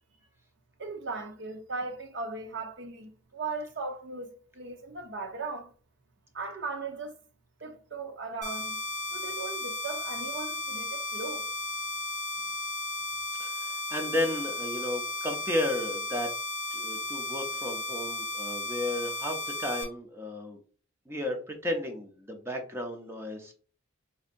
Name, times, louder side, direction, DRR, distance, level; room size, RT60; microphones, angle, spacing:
voice 1, 0.8-5.7 6.3-7.2 7.6-8.8 9.1-11.5, right 3 dB, 55° right, 0.6 m, -38 dB
sound 1, 8.4-19.8, left 2 dB, 35° right, 1.2 m, -35 dB
voice 2, 13.4-16.3 16.7-20.6 21.1-23.5, left 1 dB, 10° right, 0.5 m, -33 dB
4.2 x 2.7 x 2.5 m
head